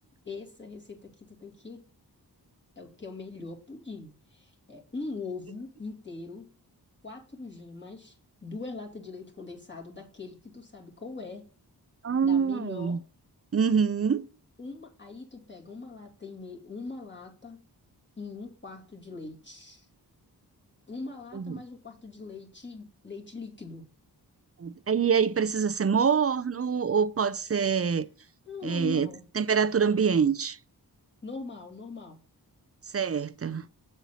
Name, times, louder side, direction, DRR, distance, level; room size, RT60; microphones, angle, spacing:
voice 1, 0.2-1.8 2.8-6.5 7.0-8.2 8.4-11.4 12.2-13.0 14.6-17.6 18.2-19.9 20.9-23.8 28.4-29.2 31.2-32.2, left 3 dB, 25° left, 2.5 m, -41 dB
voice 2, 12.0-13.0 13.5-14.3 21.3-21.6 24.6-28.1 28.6-29.1 29.3-30.6 32.9-33.7, right 6 dB, 35° right, 0.5 m, -25 dB
7.2 x 4.4 x 6.9 m
wide cardioid pair, 70°, 40 cm